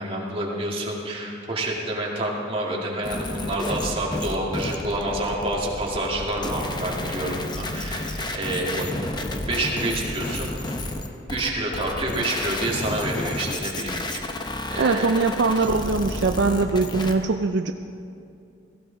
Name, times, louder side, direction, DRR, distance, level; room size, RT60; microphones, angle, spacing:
voice 1, 0.0-9.1 9.5-10.5 10.8-10.9 11.3-14.2 14.7-15.1, right 1 dB, 30° right, -3 dB, 2.1 m, -28 dB
sound 1, 3.0-17.1, left 2 dB, 20° left, 0.8 m, -31 dB
voice 2, 14.8-17.7, right 3 dB, 65° right, 6 dB, 0.5 m, -22 dB
17.0 x 15.5 x 3.9 m, 2.5 s
head